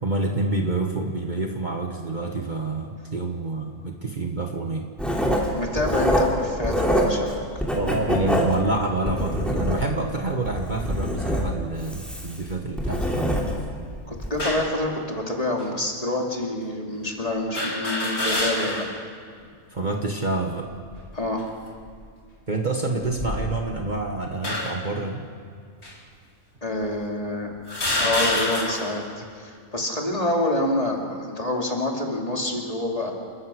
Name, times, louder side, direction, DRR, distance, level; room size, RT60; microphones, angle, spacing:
voice 1, 0.0-4.9 7.7-13.3 19.7-20.7 22.5-25.2, right 2 dB, 35° right, 2 dB, 1.5 m, -27 dB
Writing, 5.0-7.3 7.6-10.1 10.5-13.7 14.2-14.4, equal, ahead, 2.8 m, -25 dB
voice 2, 5.5-7.4 14.1-18.8 21.1-21.5 26.6-27.5 28.0-33.1, left 1 dB, 25° left, 0 dB, 2.7 m, -27 dB
sound 1, 14.4-14.8 15.6-15.7 17.5-19.0 19.4-19.5 20.7-21.1 21.8-22.1 23.0-23.8 24.4-24.9 25.8-25.9 26.8-26.9 27.7-29.0, left 1 dB, 50° left, 3.0 m, -27 dB
29.0 x 14.0 x 6.3 m, 2.2 s
omnidirectional pair, 1.5 m